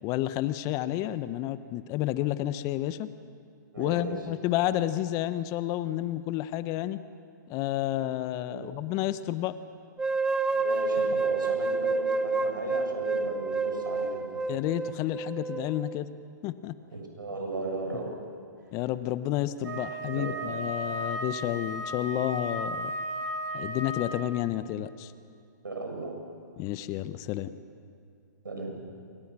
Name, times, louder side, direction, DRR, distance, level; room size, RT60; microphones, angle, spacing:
voice 1, 0.0-3.1 3.8-7.0 7.5-9.5 14.5-16.1 16.4-16.8 18.7-22.9 23.5-25.1 26.6-27.5, left 13 dB, 30° left, 14 dB, 1.0 m, -30 dB
voice 2, 3.7-4.2 8.4-8.7 10.5-14.2 16.9-18.1 20.1-20.3 25.6-26.2 28.4-28.8, right 3 dB, 90° right, 1 dB, 7.1 m, -36 dB
sound 1, 10.0-16.0, right 3 dB, 5° right, 0.9 m, -29 dB
Wind instrument woodwind instrument, 19.6-24.5, equal, 70° right, 4.7 m, -35 dB
28.0 x 25.0 x 6.2 m, 2.4 s
hypercardioid pair, 125°, 11 cm